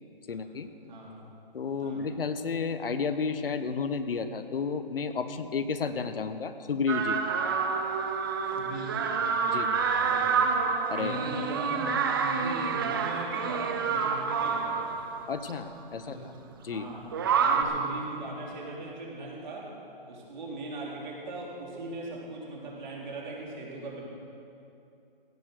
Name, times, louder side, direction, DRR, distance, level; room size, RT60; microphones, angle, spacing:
voice 1, 0.3-0.7 1.5-7.2 9.5-9.7 10.9-11.2 15.3-16.3 16.6-16.9, left 5 dB, 75° left, 10 dB, 1.0 m, -32 dB
sound 1, 6.9-15.5 17.1-17.6, right 5 dB, 25° right, 0.6 m, -28 dB
voice 2, 8.5-9.1 9.4-10.5 10.9-14.9 16.0-16.2 16.7-17.0 17.4-19.7 20.1-24.0, right 2 dB, 50° right, -3 dB, 3.6 m, -40 dB
16.5 x 9.0 x 6.7 m, 2.7 s
hypercardioid pair, 160°, 29 cm